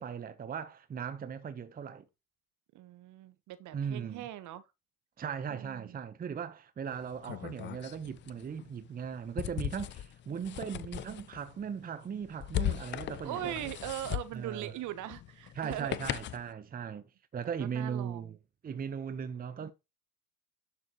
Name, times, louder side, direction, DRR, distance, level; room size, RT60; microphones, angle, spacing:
voice 1, 0.0-2.0 3.7-4.2 5.2-13.7 14.3-14.7 15.5-17.0 17.3-18.4 18.6-19.7, right 7 dB, 20° right, 1.1 m, -38 dB
voice 2, 2.7-4.6 5.5-6.0 10.3-10.8 13.2-16.0 17.7-18.4 19.6-19.7, right 13 dB, 40° right, 1.3 m, -41 dB
sound 1, 6.9-16.5, left 12 dB, 25° left, 0.6 m, -39 dB
12.0 x 7.0 x 3.1 m
hypercardioid pair, 90°, 46 cm